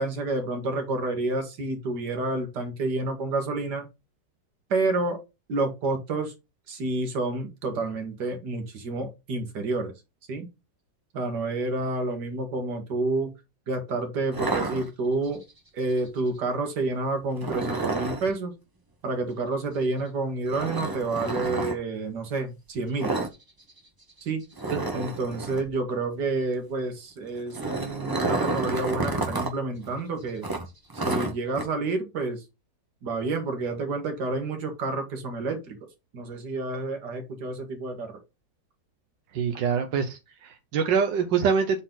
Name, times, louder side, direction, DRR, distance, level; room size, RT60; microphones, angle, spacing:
voice 1, 0.0-3.9 4.7-5.2 5.5-6.3 6.7-9.9 10.3-10.5 11.1-13.3 13.7-15.4 15.7-18.5 19.0-23.1 24.2-24.5 24.9-30.5 30.9-32.4 33.0-35.8 36.1-38.2, right 3 dB, 70° right, 2.2 m, -29 dB
sound 1, 14.3-15.4 17.4-18.3 20.5-21.7 23.0-23.4 23.6-23.8 24.1-24.2 24.6-25.7 27.3-29.5 29.8-29.9 30.4-31.6, right 2 dB, 15° right, 0.9 m, -30 dB
voice 2, 39.3-41.8, right 6 dB, 90° right, 1.6 m, -25 dB
7.5 x 4.2 x 3.9 m
omnidirectional pair, 1.9 m